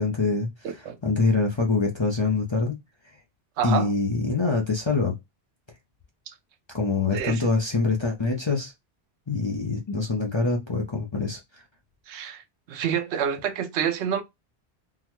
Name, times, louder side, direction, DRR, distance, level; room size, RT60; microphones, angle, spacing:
voice 1, 0.0-2.8 3.6-5.1 6.7-8.7 9.3-11.4, left 3 dB, 35° left, 0.5 m, -25 dB
voice 2, 0.6-1.0 3.6-3.9 6.3-6.4 7.1-7.5 12.1-12.4 12.7-14.2, right 8 dB, 80° right, 0.9 m, -28 dB
3.8 x 2.1 x 2.9 m
omnidirectional pair, 1.1 m